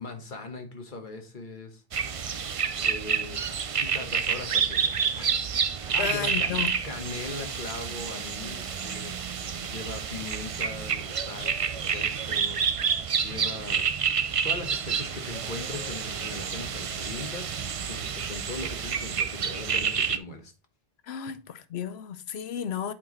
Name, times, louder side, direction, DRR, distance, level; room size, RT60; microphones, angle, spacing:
voice 1, 0.0-1.8 2.8-3.4 3.8-5.3 5.8-12.6 13.2-14.2 14.4-20.5, left 3 dB, 50° left, 1.4 m, -40 dB
sound 1, 1.9-20.2, right 6 dB, 45° right, 0.5 m, -29 dB
voice 2, 6.0-6.7 21.0-22.9, left 8 dB, 85° left, 0.9 m, -33 dB
8.5 x 4.7 x 3.1 m
omnidirectional pair, 1.0 m